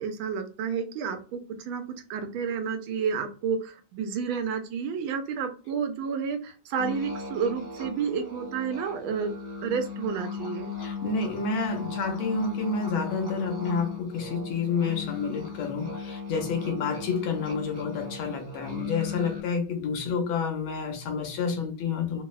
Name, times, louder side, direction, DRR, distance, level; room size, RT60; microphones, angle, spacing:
voice 1, 0.0-1.8 2.1-9.3 9.6-10.7, right 6 dB, 90° right, 1.4 m, -30 dB
sound 1, 6.8-19.4, left 4 dB, 35° right, 0.7 m, -37 dB
voice 2, 10.8-22.2, left 5 dB, 80° left, 1.5 m, -29 dB
3.7 x 2.0 x 2.3 m
omnidirectional pair, 2.2 m